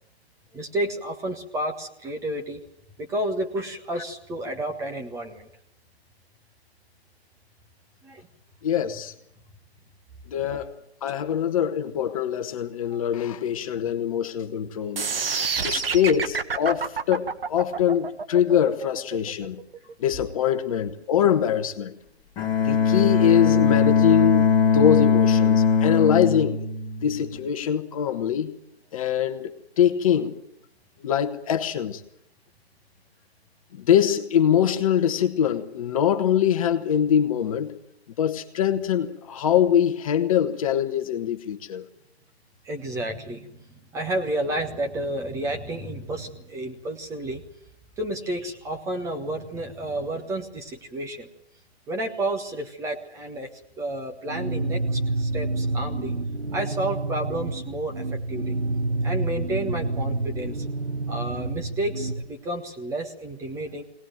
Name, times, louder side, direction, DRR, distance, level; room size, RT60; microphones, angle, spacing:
voice 1, 0.5-2.6 3.0-5.5 8.0-8.3 12.9-13.0 42.6-47.4 48.0-51.3 51.9-56.1 56.5-58.6 59.0-60.6 61.1-63.8, right 1 dB, 10° right, 1.5 m, -31 dB
voice 2, 8.6-9.1 10.3-10.7 11.0-15.1 15.6-19.6 20.0-21.9 22.6-26.6 27.0-28.5 28.9-30.4 31.0-32.0 33.7-37.8 38.2-41.8, left 9 dB, 30° left, 1.4 m, -23 dB
sound 1, 15.0-21.0, right 5 dB, 60° right, 1.6 m, -28 dB
Bowed string instrument, 22.4-27.4, left 6 dB, 15° left, 2.5 m, -20 dB
sound 2, 54.3-62.2, right 2 dB, 85° right, 2.4 m, -28 dB
22.5 x 19.0 x 9.0 m
figure-of-eight pair, 140°, 32 cm